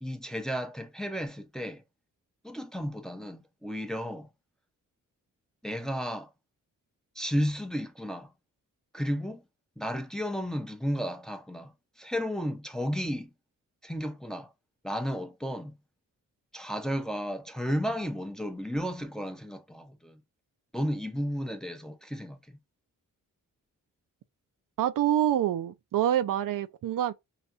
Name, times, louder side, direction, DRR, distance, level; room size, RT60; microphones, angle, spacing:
voice 1, 0.0-1.8 2.4-4.3 5.6-6.3 7.2-8.3 8.9-9.4 9.8-13.3 13.8-14.5 14.8-15.7 16.5-20.2 20.7-22.6, equal, ahead, 0.5 m, -33 dB
voice 2, 24.8-27.1, right 11 dB, 75° right, 0.5 m, -26 dB
5.7 x 2.2 x 2.6 m
cardioid pair, 90°, 33 cm